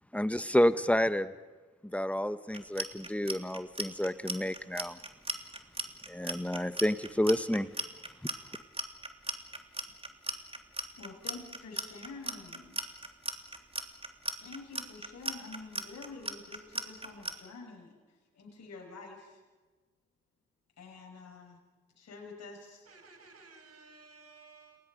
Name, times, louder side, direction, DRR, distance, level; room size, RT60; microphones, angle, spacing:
voice 1, 0.1-1.3 1.8-5.0 6.1-7.7, left 1 dB, 5° left, 12 dB, 1.5 m, -29 dB
Clock, 2.5-17.3, right 2 dB, 20° right, 3.2 m, -37 dB
voice 2, 10.8-12.8 14.4-19.4 20.8-21.6 22.0-22.9, left 3 dB, 55° left, -1 dB, 6.1 m, -48 dB
voice 3, 22.9-24.8, right 4 dB, 50° right, 5 dB, 6.5 m, -55 dB
29.5 x 22.0 x 5.4 m, 1.3 s
hypercardioid pair, 40°, 31 cm